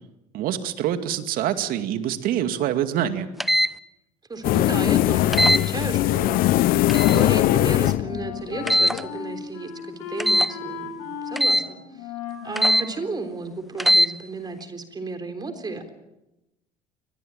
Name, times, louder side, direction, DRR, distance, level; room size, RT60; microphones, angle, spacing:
voice 1, 0.3-3.3, right 10 dB, 65° right, 9 dB, 2.3 m, -25 dB
sound 1, 3.4-3.7 5.3-5.6 6.9-7.2 8.7-9.0 10.2-10.5 11.4-11.6 12.6-12.8 13.8-14.1, equal, ahead, 0.9 m, -19 dB
voice 2, 4.3-6.6 6.9-12.1 12.4-15.9, right 3 dB, 25° right, 8 dB, 3.7 m, -33 dB
sound 2, 4.4-9.0, left 15 dB, 65° left, 0.8 m, -21 dB
Wind instrument woodwind instrument, 7.0-14.0, left 5 dB, 80° left, 6.6 m, -37 dB
23.5 x 20.0 x 8.9 m, 0.93 s
supercardioid pair, 85°, 16 cm